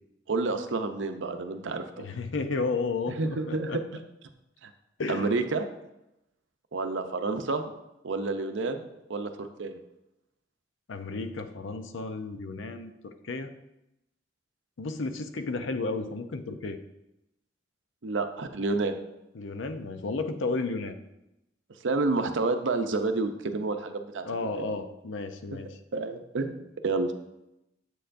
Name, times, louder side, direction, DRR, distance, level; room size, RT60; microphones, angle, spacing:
voice 1, 0.3-2.0 3.2-3.8 4.6-4.7 5.1-5.6 6.7-7.6 8.0-9.8 18.0-18.9 21.8-24.8 25.9-27.1, right 3 dB, 75° right, 7 dB, 0.6 m, -29 dB
voice 2, 2.0-3.8 5.0-5.3 10.9-13.5 14.8-16.8 19.3-20.9 24.2-25.8, left 3 dB, 85° left, 9 dB, 0.6 m, -33 dB
8.0 x 6.8 x 2.6 m, 0.89 s
head